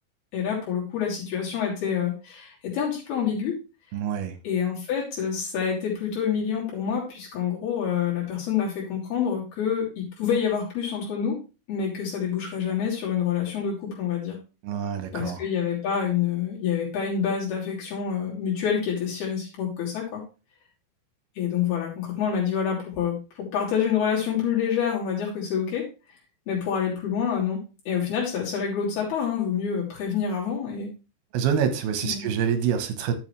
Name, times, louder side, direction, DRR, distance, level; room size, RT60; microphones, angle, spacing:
voice 1, 0.3-3.5 4.4-11.4 11.7-14.4 15.1-20.2 21.4-25.8 26.5-27.6 27.9-30.9 32.0-32.3, left 7 dB, 80° left, -5 dB, 5.1 m, -27 dB
voice 2, 3.9-4.4 14.6-15.4 31.3-33.1, right 7 dB, 80° right, 8 dB, 3.1 m, -26 dB
11.5 x 7.3 x 3.2 m, 0.31 s
omnidirectional pair, 4.4 m